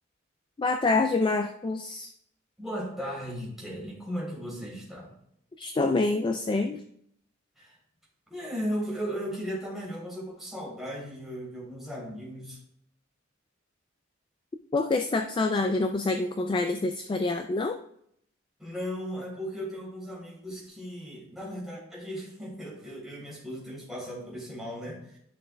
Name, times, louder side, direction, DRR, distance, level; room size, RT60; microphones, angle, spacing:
voice 1, 0.6-2.1 5.6-6.8 14.7-17.8, left 3 dB, 25° left, 6 dB, 0.3 m, -26 dB
voice 2, 2.6-5.1 7.6-7.8 8.3-12.6 18.6-25.2, equal, ahead, -4 dB, 3.4 m, -36 dB
11.5 x 6.3 x 2.3 m, 0.70 s
head